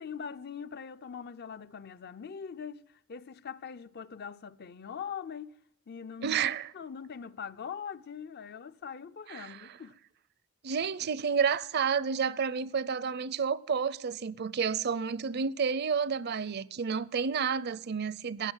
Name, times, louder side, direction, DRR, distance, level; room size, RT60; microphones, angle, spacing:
voice 1, 0.0-5.6 5.9-6.4 6.7-10.0, left 7 dB, 50° left, 0.5 m, -42 dB
voice 2, 6.2-6.7 9.3-9.8 10.6-18.5, right 6 dB, 50° right, 0.6 m, -30 dB
15.5 x 9.7 x 9.1 m
head